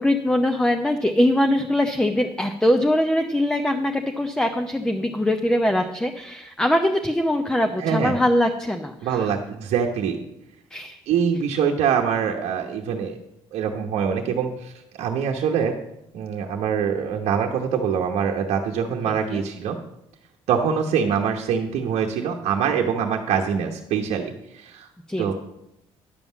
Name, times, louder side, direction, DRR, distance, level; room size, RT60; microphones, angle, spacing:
voice 1, 0.0-9.3 10.7-11.0 19.1-19.4 25.1-25.3, left 1 dB, 5° left, 5 dB, 0.8 m, -22 dB
voice 2, 7.8-8.2 9.0-10.2 11.1-13.2 13.5-15.7 16.1-19.8 20.5-24.9 25.2-25.3, right 7 dB, 80° right, 1 dB, 1.0 m, -24 dB
10.0 x 5.5 x 7.1 m, 0.82 s
cardioid pair, 85°, 11 cm